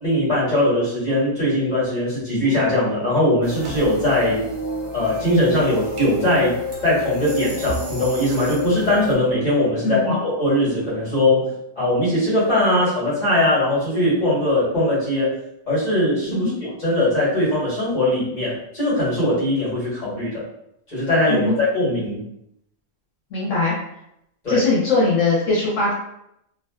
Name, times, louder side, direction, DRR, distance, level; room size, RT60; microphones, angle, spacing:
voice 1, 0.0-4.4 4.9-6.6 6.8-15.4 15.7-20.4 20.9-22.2 24.4-24.6, left 1 dB, 35° left, -8 dB, 1.3 m, -20 dB
sound 1, 3.4-9.1, left 1 dB, 50° right, 0.3 m, -31 dB
voice 2, 9.8-10.2 16.3-16.5 21.3-21.6 23.3-23.7 24.5-25.9, left 3 dB, 75° left, -6 dB, 1.0 m, -20 dB
2.4 x 2.4 x 2.2 m, 0.79 s
omnidirectional pair, 1.3 m